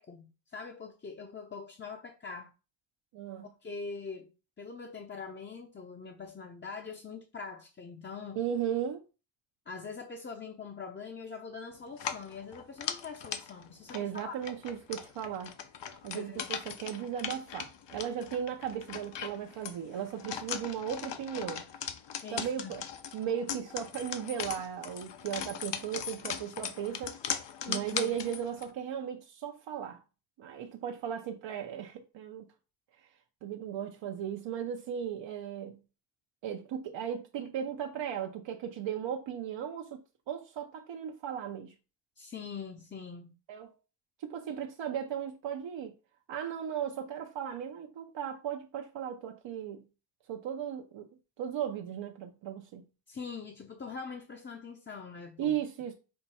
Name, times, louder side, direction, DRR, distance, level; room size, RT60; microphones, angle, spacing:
voice 1, 0.0-2.5 3.4-8.4 9.7-14.4 16.1-16.5 22.2-22.8 27.6-28.2 42.2-43.4 53.1-55.6, left 5 dB, 25° left, 0.5 m, -43 dB
voice 2, 3.1-3.5 8.4-9.0 13.9-15.6 15.9-21.6 22.3-22.8 23.1-27.2 27.7-30.0 30.4-32.5 33.4-35.8 36.4-40.0 40.3-41.7 43.5-43.7 44.2-45.9 46.3-49.8 50.3-51.1 51.4-52.9 55.4-55.9, right 9 dB, 85° right, 0.7 m, -36 dB
sound 1, 11.9-28.7, left 8 dB, 70° left, 0.7 m, -39 dB
5.5 x 2.3 x 4.1 m
cardioid pair, 80°, 44 cm